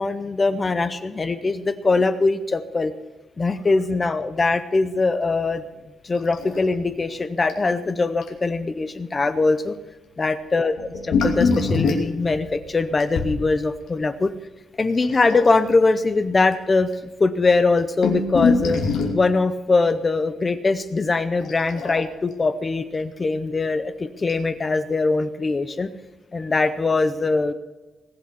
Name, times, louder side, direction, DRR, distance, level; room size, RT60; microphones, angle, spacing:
voice 1, 0.0-2.9 3.4-5.6 6.0-9.8 10.2-10.7 11.0-14.3 14.8-18.8 19.1-25.9 26.3-27.5, left 3 dB, 20° left, 12 dB, 0.6 m, -22 dB
sound 1, 6.3-6.9 7.1-7.2 7.5-7.7 8.2-8.3 10.8-13.4 15.0-15.7 16.5-16.6 16.8-16.9 17.5-19.3 21.4-22.3 23.6-23.7 24.3-24.4, left 4 dB, 75° left, 2.8 m, -24 dB
19.5 x 7.9 x 7.0 m, 1.2 s
wide cardioid pair, 175°, 0 cm